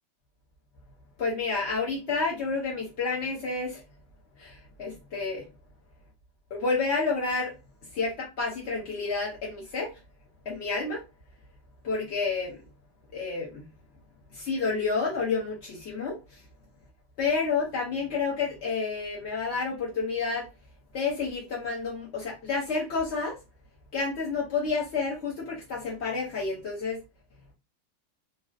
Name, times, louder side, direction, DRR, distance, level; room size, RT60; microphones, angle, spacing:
voice 1, 1.2-3.8 4.4-5.4 6.5-7.5 7.9-9.9 10.4-11.0 11.8-12.6 13.1-13.7 14.3-16.2 17.2-20.5 20.9-23.4 23.9-27.0, left 4 dB, 60° left, 0.7 m, -30 dB
3.2 x 2.7 x 2.5 m
omnidirectional pair, 2.2 m